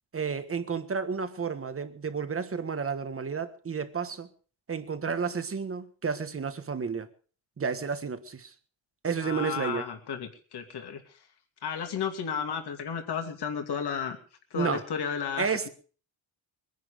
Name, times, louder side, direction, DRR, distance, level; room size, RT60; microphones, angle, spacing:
voice 1, 0.1-4.3 4.7-7.1 7.6-8.5 9.0-9.8 14.5-14.8 15.4-15.7, right 5 dB, 30° right, 1.4 m, -31 dB
voice 2, 9.2-11.0 11.6-14.2 14.5-15.7, left 7 dB, 55° left, 2.7 m, -33 dB
22.5 x 10.5 x 5.1 m
cardioid pair, 150°, 48 cm